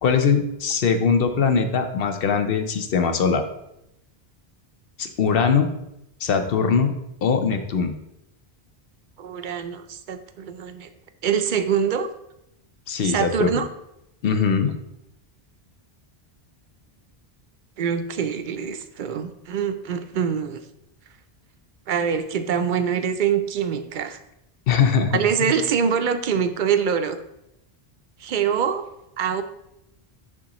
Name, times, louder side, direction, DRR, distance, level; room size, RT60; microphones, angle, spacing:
voice 1, 0.0-3.4 5.0-5.7 6.2-6.9 7.2-7.9 12.9-13.5 14.2-14.7 24.7-25.2, left 6 dB, 65° left, 7 dB, 0.9 m, -21 dB
voice 2, 9.2-10.9 11.2-12.1 13.0-13.7 17.8-20.6 21.9-24.2 25.1-27.2 28.2-28.9 29.2-29.4, right 7 dB, 60° right, 9 dB, 0.6 m, -24 dB
11.0 x 3.8 x 3.0 m, 0.83 s
omnidirectional pair, 1.1 m